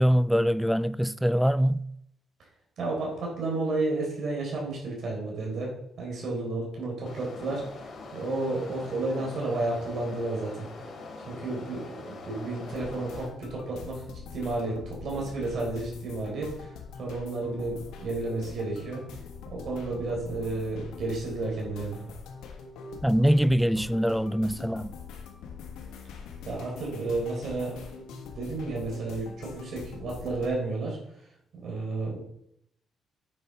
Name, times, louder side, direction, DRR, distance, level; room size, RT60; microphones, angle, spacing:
voice 1, 0.0-1.8 23.0-24.9, equal, ahead, 0.3 m, -23 dB
voice 2, 2.8-5.7 6.0-7.6 8.1-10.7 11.3-16.7 17.0-19.0 19.5-22.0 26.4-31.0 31.5-32.2, right 2 dB, 65° right, 4.3 m, -32 dB
sound 1, 7.1-13.3, left 3 dB, 60° left, 2.8 m, -43 dB
sound 2, 12.6-30.5, left 6 dB, 90° left, 1.6 m, -44 dB
9.7 x 7.1 x 4.6 m
cardioid pair, 90°, 0 cm